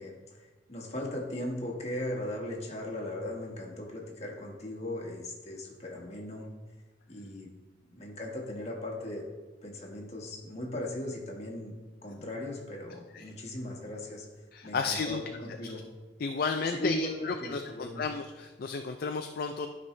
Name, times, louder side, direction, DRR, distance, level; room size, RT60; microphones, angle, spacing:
voice 1, 0.0-6.5 7.1-7.5 7.9-9.3 9.6-11.7 12.0-14.3 14.6-15.8 16.7-18.0, left 1 dB, 35° left, -1 dB, 1.6 m, -38 dB
voice 2, 14.5-15.2 15.6-15.7 16.2-19.7, left 4 dB, 55° left, 5 dB, 0.4 m, -33 dB
12.0 x 5.4 x 3.2 m, 1.3 s
head